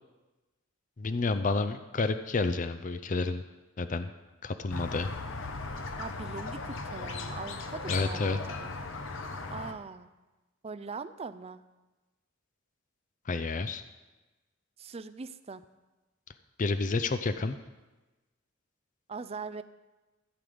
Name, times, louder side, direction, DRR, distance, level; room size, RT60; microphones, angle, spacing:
voice 1, 1.0-3.4 3.8-4.1 4.4-5.1 7.9-8.4 13.3-13.8 16.6-17.6, left 3 dB, 40° left, 10 dB, 0.5 m, -30 dB
Squeak, 4.7-9.7, left 3 dB, 65° left, 1.0 m, -37 dB
voice 2, 6.0-8.7 9.5-10.1 10.6-11.6 14.8-15.6 19.1-19.6, right 4 dB, 30° right, 12 dB, 0.4 m, -41 dB
15.0 x 7.7 x 5.1 m, 1.1 s
head